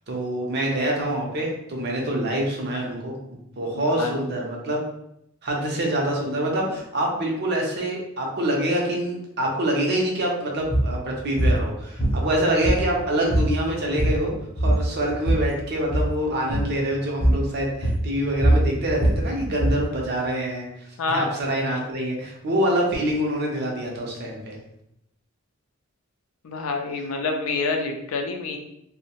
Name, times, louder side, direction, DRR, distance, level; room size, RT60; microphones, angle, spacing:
voice 1, 0.1-4.8 5.4-24.6, right 1 dB, 50° right, -1 dB, 0.6 m, -26 dB
voice 2, 3.7-4.3 21.0-21.3 26.4-28.6, left 3 dB, 75° left, 4 dB, 0.4 m, -27 dB
sound 1, 10.6-10.9 11.4-11.6 12.0-13.0 13.3-13.5 13.8-14.3 14.6-15.5 15.8-16.1 16.5-16.7 17.2-17.5 17.8-19.8, right 1 dB, 20° left, 0.7 m, -21 dB
2.6 x 2.1 x 2.9 m, 0.79 s
head